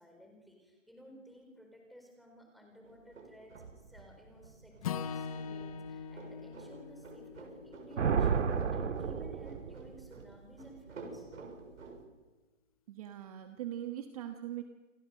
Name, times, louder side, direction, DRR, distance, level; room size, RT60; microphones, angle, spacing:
voice 1, 0.0-11.3, equal, ahead, 1 dB, 4.4 m, -56 dB
sound 1, 2.8-12.1, right 3 dB, 85° right, 7.2 m, -52 dB
Acoustic guitar / Strum, 4.8-9.1, left 6 dB, 30° left, 0.8 m, -42 dB
Thunder, 8.0-10.2, right 6 dB, 70° right, 2.0 m, -31 dB
voice 2, 12.9-14.6, right 12 dB, 30° right, 6 dB, 1.4 m, -41 dB
29.5 x 22.5 x 6.5 m, 1.2 s
hypercardioid pair, 160°, 38 cm